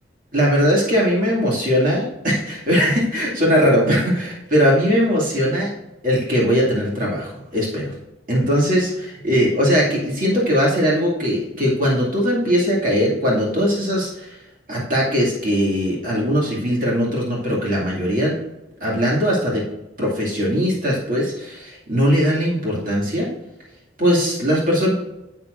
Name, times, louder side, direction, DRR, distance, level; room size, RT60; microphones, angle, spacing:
voice 1, 0.3-5.7 6.0-7.9 8.3-14.4 14.7-18.3 18.8-19.6 20.0-23.3 24.0-24.9, equal, 45° right, -5 dB, 2.3 m, -20 dB
11.0 x 7.4 x 2.5 m, 0.96 s
head